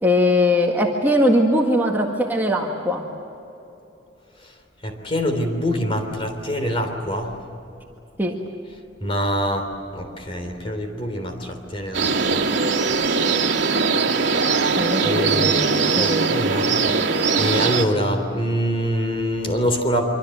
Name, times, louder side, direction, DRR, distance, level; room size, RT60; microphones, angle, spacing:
voice 1, 0.0-3.0 8.2-8.3 14.8-16.3, left 1 dB, 10° right, 0 dB, 1.8 m, -20 dB
voice 2, 4.8-7.3 9.0-12.5 15.0-15.6 15.9-20.1, equal, 30° left, 5 dB, 3.5 m, -25 dB
sound 1, 11.9-17.8, right 4 dB, 65° right, 2.1 m, -20 dB
26.0 x 25.0 x 7.9 m, 2.8 s
head